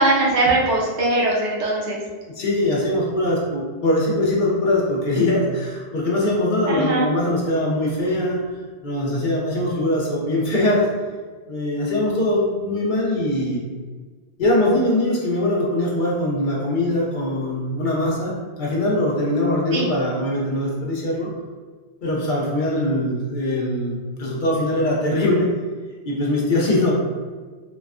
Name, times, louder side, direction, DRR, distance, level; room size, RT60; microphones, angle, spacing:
voice 1, 0.0-2.0 6.7-7.0 19.7-19.8, right 2 dB, 80° right, -4 dB, 1.1 m, -20 dB
voice 2, 2.3-8.4 8.8-10.9 11.5-13.6 14.4-21.3 22.0-25.5 26.0-26.9, left 1 dB, 55° left, -4 dB, 0.7 m, -22 dB
4.0 x 2.1 x 2.4 m, 1.4 s
omnidirectional pair, 1.2 m